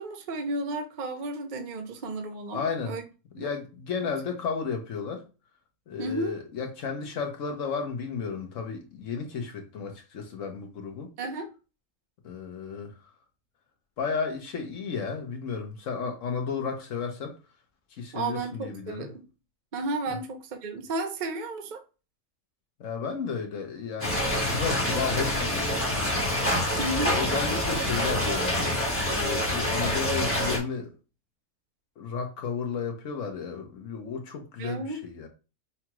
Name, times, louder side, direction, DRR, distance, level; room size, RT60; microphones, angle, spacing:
voice 1, 0.0-3.0 3.4-3.5 6.0-6.4 11.2-11.5 18.1-19.1 19.7-21.8 26.8-27.2 34.6-35.0, right 2 dB, 45° right, 0.7 m, -33 dB
voice 2, 2.5-2.9 3.3-5.2 5.9-11.1 12.2-12.9 14.0-17.4 17.9-19.1 20.1-20.2 22.8-26.1 27.0-28.6 29.0-30.9 32.0-35.3, left 5 dB, 70° left, 1.2 m, -33 dB
sound 1, 24.0-30.6, left 1 dB, 10° left, 1.0 m, -26 dB
5.6 x 2.4 x 2.9 m
omnidirectional pair, 1.4 m